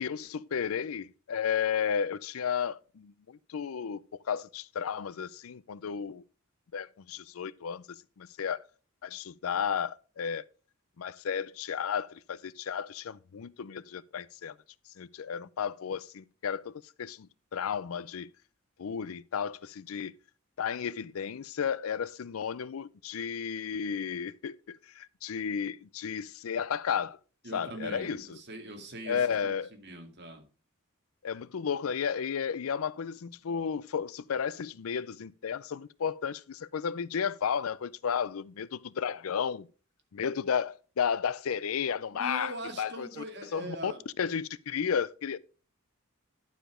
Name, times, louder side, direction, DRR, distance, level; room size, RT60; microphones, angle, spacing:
voice 1, 0.0-4.0 4.3-6.2 6.7-8.6 9.0-10.4 11.0-14.5 15.0-18.3 18.8-20.1 20.6-27.2 27.5-28.4 29.1-29.7 31.2-39.7 40.1-42.5 42.8-43.2 43.5-43.9 44.2-45.4, left 7 dB, 80° left, 0.5 m, -33 dB
voice 2, 27.4-30.4 42.1-44.0, right 1 dB, 55° right, 2.1 m, -42 dB
11.5 x 5.0 x 4.9 m
head